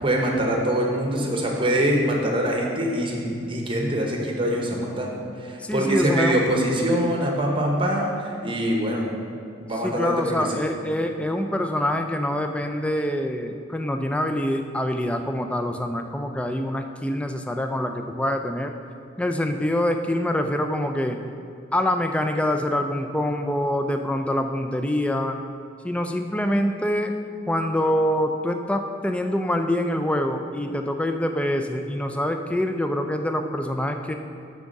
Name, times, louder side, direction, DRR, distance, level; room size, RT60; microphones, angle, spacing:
voice 1, 0.0-9.1 9.6-10.6, right 1 dB, 25° right, 0 dB, 0.8 m, -24 dB
voice 2, 5.6-6.4 9.8-18.7 19.2-21.2 21.7-25.4 25.8-27.1 27.5-34.1, left 1 dB, 5° left, 5 dB, 0.3 m, -25 dB
9.2 x 3.5 x 6.4 m, 2.5 s
head